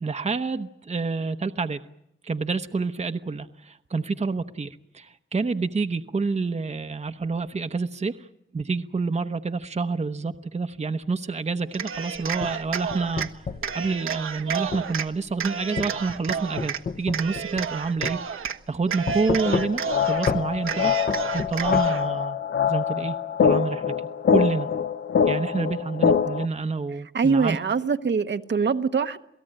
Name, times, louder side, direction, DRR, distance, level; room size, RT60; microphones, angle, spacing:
voice 1, 0.0-1.8 2.2-8.3 8.5-13.5 13.7-20.9 21.3-22.4 22.7-23.2 23.4-24.7 25.3-27.6, right 4 dB, 30° right, 8 dB, 0.9 m, -28 dB
Cheering, 11.7-13.3 13.6-15.1 15.4-16.8 17.1-18.6 18.8-20.3 20.6-22.1, right 7 dB, 75° right, 1.3 m, -31 dB
sound 1, 12.2-13.7 14.7-14.9 15.8-17.8 18.0-18.2 19.1-19.9 20.3-20.5 21.1-21.9, left 5 dB, 45° left, 1.2 m, -30 dB
sound 2, 19.4-26.4, left 7 dB, 65° left, 0.9 m, -24 dB
voice 2, 27.1-29.2, right 5 dB, 55° right, 8 dB, 1.1 m, -23 dB
28.0 x 17.5 x 8.9 m, 0.84 s
cardioid pair, 80°, 21 cm